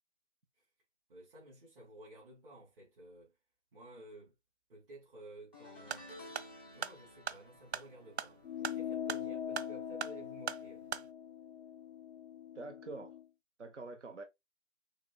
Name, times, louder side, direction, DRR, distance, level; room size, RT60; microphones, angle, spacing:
voice 1, 1.1-3.3 3.7-4.3 4.7-6.1 6.7-10.9, right 1 dB, 55° right, 3.1 m, -54 dB
sound 1, 5.5-10.9 11.2-11.6 12.8-12.9, left 1 dB, 10° right, 0.4 m, -56 dB
sound 2, 5.8-11.1, right 7 dB, 70° right, 0.8 m, -42 dB
sound 3, 8.4-13.3, left 9 dB, 70° left, 0.5 m, -42 dB
voice 2, 12.5-13.2 13.6-14.2, right 3 dB, 85° right, 1.1 m, -45 dB
6.1 x 3.8 x 2.3 m
figure-of-eight pair, 145°, 35 cm